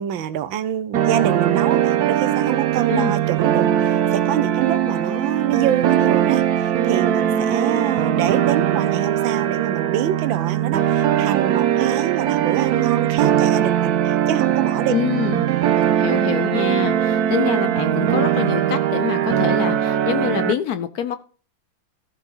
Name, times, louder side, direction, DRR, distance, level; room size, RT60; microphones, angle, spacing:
voice 1, 0.0-14.9 15.7-15.9, right 10 dB, 85° right, 1.6 m, -26 dB
sound 1, 0.9-20.5, right 10 dB, 65° right, 1.1 m, -20 dB
voice 2, 14.9-15.5 16.0-21.2, left 9 dB, 65° left, 1.0 m, -25 dB
14.0 x 5.6 x 5.5 m
omnidirectional pair, 2.1 m